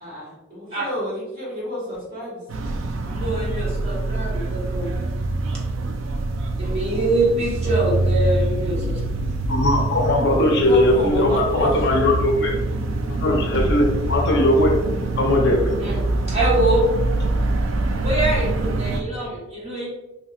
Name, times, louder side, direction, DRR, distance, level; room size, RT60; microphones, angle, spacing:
voice 1, 0.0-2.7 6.5-7.0 10.6-12.0, equal, 45° right, -7 dB, 1.5 m, -30 dB
sound 1, 2.5-19.0, right 2 dB, 65° right, 0.3 m, -24 dB
voice 2, 3.1-4.9 6.6-9.0 15.8-16.0 16.3-16.8 18.0-19.9, right 2 dB, 30° right, -5 dB, 1.0 m, -24 dB
voice 3, 9.5-12.6 13.0-14.7 15.2-15.7, left 1 dB, 60° left, 0 dB, 0.7 m, -19 dB
3.3 x 2.7 x 2.3 m, 1.0 s
head